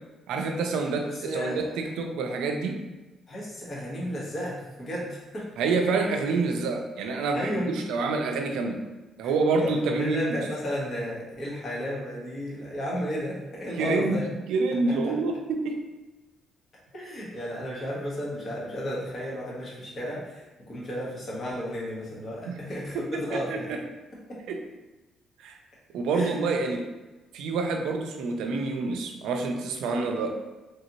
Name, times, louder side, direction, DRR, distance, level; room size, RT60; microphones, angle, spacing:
voice 1, 0.3-2.8 5.6-8.8 9.2-10.4 13.8-14.2 14.5-15.8 22.5-22.6 23.3-23.8 24.5-24.6 25.4-25.6 25.9-26.8 27.3-30.4, right 3 dB, 90° right, 3 dB, 0.4 m, -27 dB
voice 2, 1.0-1.7 3.3-5.5 7.3-7.9 9.6-14.2 14.9-15.1 16.9-23.7 24.3-24.4 26.1-26.4, equal, 50° left, -6 dB, 1.3 m, -33 dB
3.3 x 2.7 x 2.9 m, 1.1 s
cardioid pair, 90°, 0 cm